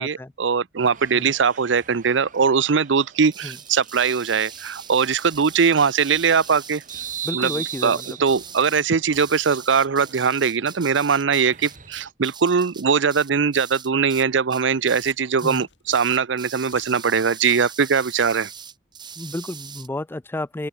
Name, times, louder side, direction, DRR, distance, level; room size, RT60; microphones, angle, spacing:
voice 1, 0.0-6.8 7.3-7.5 7.8-18.5, right 6 dB, 80° right, 0.6 m, -21 dB
sound 1, 0.8-12.1, right 9 dB, 45° right, 3.0 m, -40 dB
sound 2, 3.3-14.2 14.5-15.1 15.4-15.6 15.9-19.9, right 7 dB, 25° right, 1.1 m, -41 dB
voice 2, 7.2-8.2 15.4-15.7 19.2-20.7, left 1 dB, 10° left, 0.4 m, -31 dB
Domestic sounds home sounds, 14.1-14.3 14.8-15.2 15.7-16.0 16.6-17.0 17.4-17.7 18.1-18.4, left 9 dB, 70° left, 3.5 m, -46 dB
open air
head